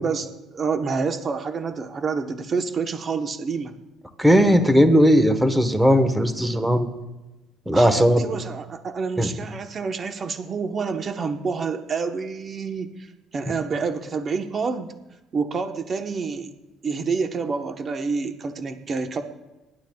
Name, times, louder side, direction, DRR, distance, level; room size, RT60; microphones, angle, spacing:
voice 1, 0.0-3.7 7.7-14.9 15.3-16.5 16.8-19.2, right 5 dB, 40° right, 6 dB, 1.0 m, -28 dB
voice 2, 4.2-6.9 7.7-8.2 9.2-9.3, equal, 5° right, 8 dB, 1.2 m, -17 dB
26.5 x 11.5 x 2.3 m, 1.0 s
cardioid pair, 110°, 0 cm